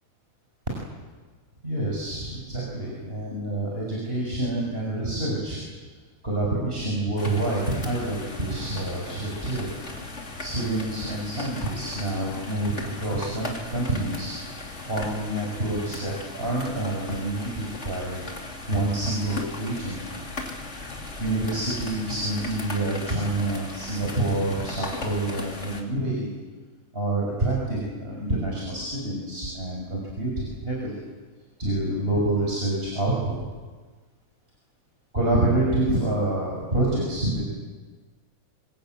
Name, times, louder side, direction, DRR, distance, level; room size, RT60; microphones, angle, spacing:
voice 1, 1.6-5.6 6.2-9.7 10.4-14.3 14.8-20.2 21.2-26.4 26.9-31.0 31.6-33.4 35.1-37.5, right 2 dB, 15° right, -3 dB, 5.9 m, -27 dB
sound 1, 7.2-25.8, left 3 dB, 20° left, 2.9 m, -37 dB
26.5 x 22.5 x 9.3 m, 1.4 s
omnidirectional pair, 3.8 m